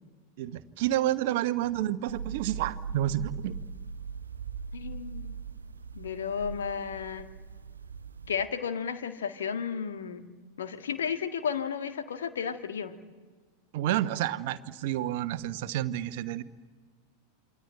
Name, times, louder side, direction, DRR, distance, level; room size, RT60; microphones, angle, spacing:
voice 1, 0.4-3.6 13.7-16.4, right 13 dB, 50° right, 12 dB, 1.1 m, -29 dB
sound 1, 2.0-8.4, right 6 dB, 75° right, 0.8 m, -40 dB
voice 2, 4.7-5.4 5.9-7.3 8.3-10.3 10.6-12.9, left 7 dB, 65° left, 7 dB, 1.7 m, -33 dB
28.0 x 23.0 x 9.0 m, 1.5 s
figure-of-eight pair, 90°, 0 cm